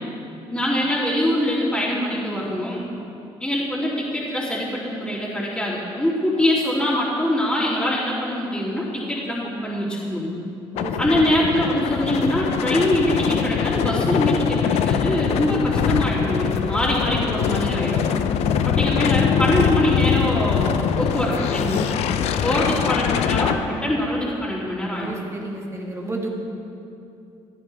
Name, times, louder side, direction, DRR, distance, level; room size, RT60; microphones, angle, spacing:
voice 1, 0.5-2.8 3.4-10.4 11.0-18.1 18.6-20.7 21.0-21.9 22.4-25.1, left 1 dB, 10° left, -9 dB, 2.9 m, -23 dB
sound 1, 10.7-23.6, left 8 dB, 80° left, 0.5 m, -23 dB
voice 2, 10.7-11.6 18.4-19.1 22.3-22.9 24.9-26.3, right 2 dB, 25° right, 0 dB, 1.9 m, -34 dB
15.0 x 9.6 x 3.4 m, 2.7 s
supercardioid pair, 75°, 11 cm